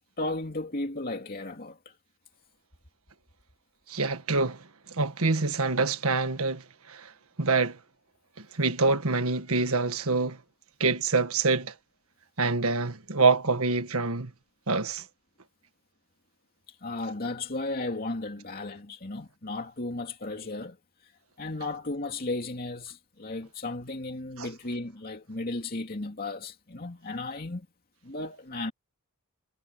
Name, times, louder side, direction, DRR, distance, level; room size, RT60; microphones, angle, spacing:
voice 1, 0.2-1.9 16.8-20.8 21.0-21.1 21.4-27.7 28.0-28.7, left 2 dB, 40° left, 2.6 m, -35 dB
voice 2, 3.9-4.6 4.9-6.6 6.9-7.1 7.4-7.8 8.6-10.4 10.8-11.7 12.4-14.3 14.7-15.0 24.4-24.5, right 3 dB, 70° right, 1.7 m, -25 dB
head